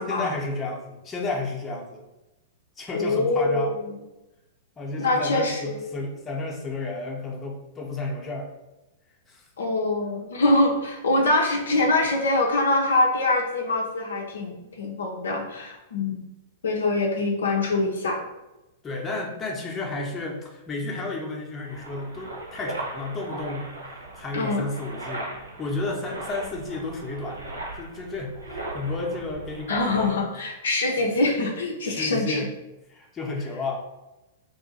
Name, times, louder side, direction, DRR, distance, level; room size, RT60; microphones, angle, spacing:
voice 1, 0.1-2.0 2.8-3.7 4.8-8.5 9.3-9.4 18.8-25.3 25.6-30.2 31.8-32.5 32.9-33.8, left 2 dB, 20° left, -1 dB, 0.7 m, -32 dB
voice 2, 2.9-3.8 5.0-5.8 9.6-16.3 16.6-18.2 24.3-24.7 29.7-32.5, left 2 dB, 65° left, 1 dB, 0.5 m, -24 dB
sound 1, 21.7-30.1, right 2 dB, 85° right, 0.6 m, -38 dB
2.6 x 2.4 x 4.0 m, 0.98 s
figure-of-eight pair, 100°, 0 cm